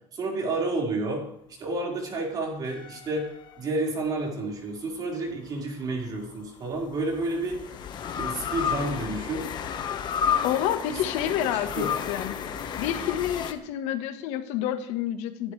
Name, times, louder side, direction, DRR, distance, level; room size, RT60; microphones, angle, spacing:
voice 1, 0.1-1.2 1.6-3.3 3.6-7.6 8.2-9.5 10.9-11.0 11.5-11.9, right 2 dB, 35° right, -2 dB, 4.9 m, -30 dB
sound 1, 2.6-4.1 6.0-13.5, left 7 dB, 40° left, 1.4 m, -32 dB
voice 2, 10.4-12.4 12.8-15.5, left 11 dB, 80° left, 8 dB, 1.5 m, -29 dB
27.5 x 11.5 x 3.4 m, 0.74 s
cardioid pair, 140°, 11 cm